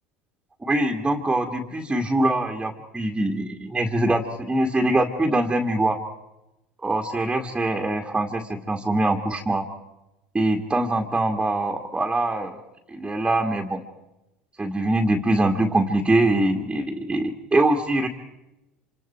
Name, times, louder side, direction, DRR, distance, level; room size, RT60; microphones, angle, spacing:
voice 1, 0.6-6.0 6.8-9.7 10.3-12.6 12.9-13.8 14.6-18.1, right 2 dB, 15° right, 3 dB, 2.2 m, -23 dB
27.0 x 27.0 x 4.6 m, 0.94 s
hypercardioid pair, 80°, 5 cm